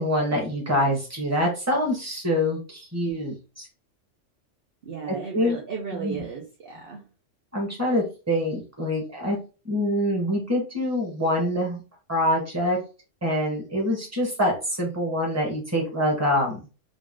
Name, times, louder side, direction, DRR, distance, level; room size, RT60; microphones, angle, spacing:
voice 1, 0.0-3.7 5.1-5.6 5.9-6.2 7.5-9.4 9.6-11.8 12.1-12.8 13.2-16.6, left 1 dB, 10° right, -1 dB, 1.4 m, -25 dB
voice 2, 4.8-7.0, right 5 dB, 50° right, -2 dB, 0.9 m, -35 dB
3.9 x 2.4 x 3.7 m, 0.33 s
omnidirectional pair, 1.3 m